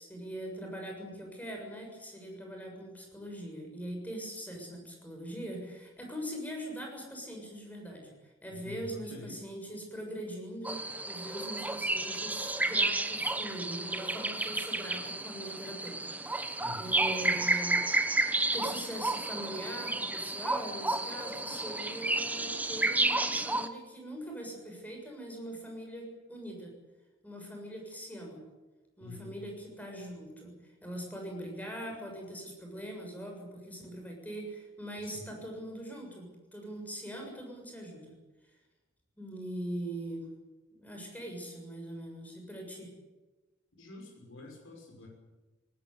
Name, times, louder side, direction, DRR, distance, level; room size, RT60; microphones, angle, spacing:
voice 1, 0.0-26.7 27.2-28.4 29.0-38.1 39.2-40.3 40.8-42.9, right 1 dB, 10° left, 1 dB, 7.0 m, -42 dB
voice 2, 8.5-9.4 16.6-17.0 29.0-29.3 35.0-35.3 43.8-45.1, left 3 dB, 80° left, 0 dB, 6.0 m, -47 dB
sound 1, 10.6-23.7, right 2 dB, 10° right, 1.1 m, -31 dB
20.5 x 18.5 x 9.7 m, 1.2 s
head